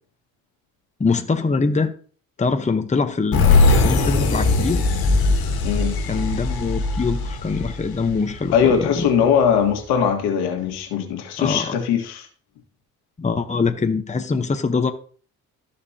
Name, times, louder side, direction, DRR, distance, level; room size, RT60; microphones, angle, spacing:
voice 1, 1.0-1.9 2.4-4.8 6.1-9.1 11.4-11.8 13.2-14.9, left 4 dB, 20° left, 1.0 m, -23 dB
sound 1, 3.3-8.8, left 3 dB, 70° left, 1.9 m, -20 dB
voice 2, 5.6-6.0 8.5-12.3, left 7 dB, 85° left, 1.7 m, -20 dB
14.0 x 5.1 x 2.8 m
supercardioid pair, 70°, 37 cm